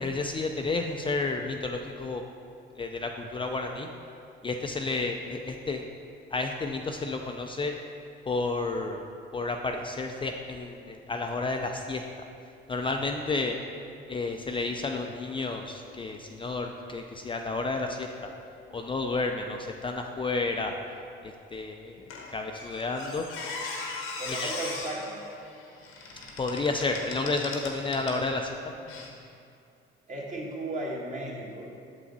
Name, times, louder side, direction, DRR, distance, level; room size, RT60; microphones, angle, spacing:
voice 1, 0.0-2.2 2.8-3.9 4.4-5.9 6.3-7.7 8.3-9.0 9.3-12.0 12.7-13.6 14.1-18.3 18.7-20.7 21.2-23.3 24.3-24.5 26.4-28.6, left 3 dB, 25° left, 3 dB, 0.4 m, -31 dB
Squeak, 22.1-28.3 28.9-29.1, left 3 dB, 85° left, 1.1 m, -39 dB
voice 2, 24.2-25.2 30.1-31.7, right 2 dB, 35° right, -3 dB, 1.7 m, -35 dB
6.9 x 5.8 x 4.1 m, 2.5 s
cardioid pair, 85°, 21 cm